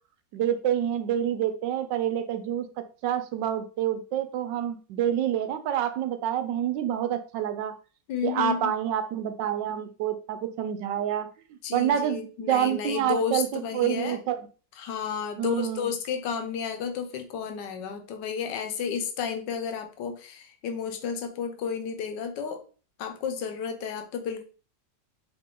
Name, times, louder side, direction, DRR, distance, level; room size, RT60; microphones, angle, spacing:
voice 1, 0.3-2.7 3.0-7.8 8.2-11.3 11.7-14.5 15.4-15.9, right 10 dB, 85° right, 9 dB, 1.3 m, -27 dB
voice 2, 8.1-8.7 11.6-14.2 14.8-22.6 23.0-24.4, left 7 dB, 80° left, 5 dB, 1.4 m, -32 dB
4.9 x 2.9 x 3.7 m, 0.37 s
omnidirectional pair, 1.9 m